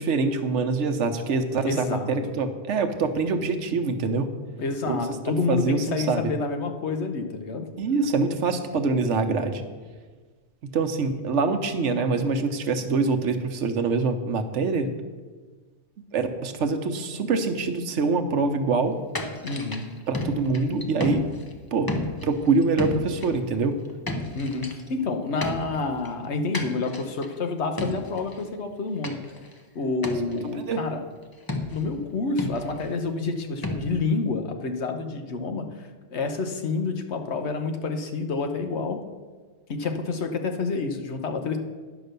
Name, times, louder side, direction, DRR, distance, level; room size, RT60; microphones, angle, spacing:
voice 1, 0.0-4.3 4.9-5.0 5.3-6.3 7.8-9.6 10.7-14.9 16.1-19.0 20.1-21.2 21.7-21.9 22.2-23.8 30.6-30.8, right 4 dB, 80° right, 8 dB, 1.1 m, -25 dB
voice 2, 1.6-2.4 4.6-7.7 19.4-19.8 24.3-29.2 29.7-31.0 31.7-39.0 39.7-41.6, left 3 dB, 70° left, 6 dB, 1.2 m, -28 dB
sound 1, 19.1-21.6 21.9-23.4 23.8-24.9 25.4-26.1 26.5-27.4 27.8-28.4 29.0-29.6 30.0-30.5 31.5-32.0 32.4-32.9 33.6-34.3, left 1 dB, 20° left, 0.7 m, -33 dB
10.5 x 6.0 x 6.6 m, 1.4 s
omnidirectional pair, 1.2 m